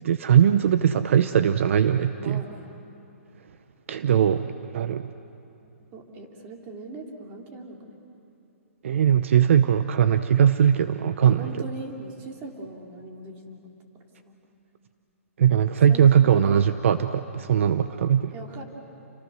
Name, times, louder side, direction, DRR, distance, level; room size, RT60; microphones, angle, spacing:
voice 1, 0.0-2.4 3.9-5.1 8.8-11.5 15.4-18.3, right 9 dB, 60° right, 11 dB, 0.8 m, -20 dB
voice 2, 2.2-2.8 5.6-7.8 11.3-13.7 14.2-14.3 15.9-16.5 18.3-18.6, right 2 dB, 25° right, 1 dB, 3.2 m, -40 dB
30.0 x 25.5 x 6.4 m, 2.8 s
hypercardioid pair, 160°, 8 cm